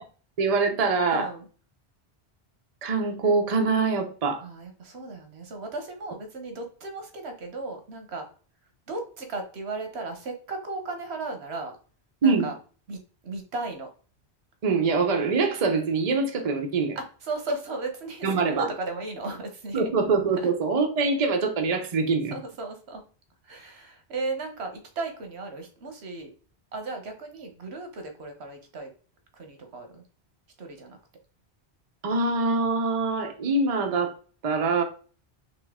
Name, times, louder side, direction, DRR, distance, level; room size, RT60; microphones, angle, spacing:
voice 1, 0.4-1.3 2.8-4.4 12.2-12.5 14.6-17.0 18.2-18.7 19.7-22.3 32.0-34.1 34.4-34.8, right 4 dB, 40° right, 0.7 m, -24 dB
voice 2, 1.1-1.5 4.4-8.3 8.9-11.7 12.2-12.5 12.9-13.9 17.0-19.9 20.4-20.5 22.3-23.0 23.4-26.3 26.7-28.9 29.3-30.0 30.6-31.0, right 3 dB, 80° right, 1.2 m, -35 dB
4.2 x 3.1 x 3.5 m
omnidirectional pair, 1.1 m